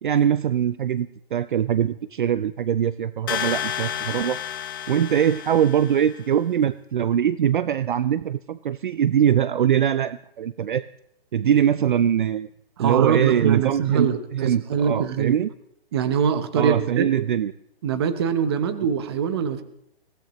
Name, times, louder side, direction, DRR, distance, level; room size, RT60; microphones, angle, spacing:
voice 1, 0.0-4.4 4.9-10.9 11.3-12.5 12.8-15.5 16.6-17.5, right 9 dB, 55° right, 16 dB, 0.4 m, -22 dB
sound 1, 3.3-6.2, left 10 dB, 20° left, 0.7 m, -31 dB
voice 2, 12.8-15.4 15.9-17.1 17.8-19.6, right 7 dB, 25° right, 11 dB, 0.8 m, -23 dB
22.5 x 16.0 x 3.1 m, 0.78 s
hypercardioid pair, 160°, 30 cm